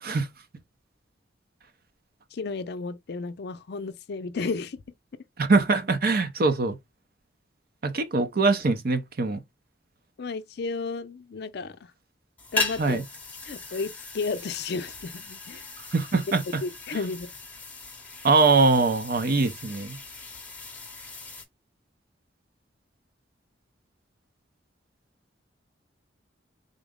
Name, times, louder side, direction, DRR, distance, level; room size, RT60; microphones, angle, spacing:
voice 1, 2.3-4.8 10.2-11.8 12.5-13.0 13.4-15.7 16.6-17.3, left 4 dB, 60° left, 0.5 m, -33 dB
voice 2, 5.4-6.8 7.8-9.4 12.8-13.0 15.9-16.4 18.2-20.0, right 3 dB, 55° right, 0.6 m, -22 dB
sound 1, 12.4-21.4, left 3 dB, 10° left, 0.8 m, -37 dB
3.8 x 2.0 x 3.6 m
head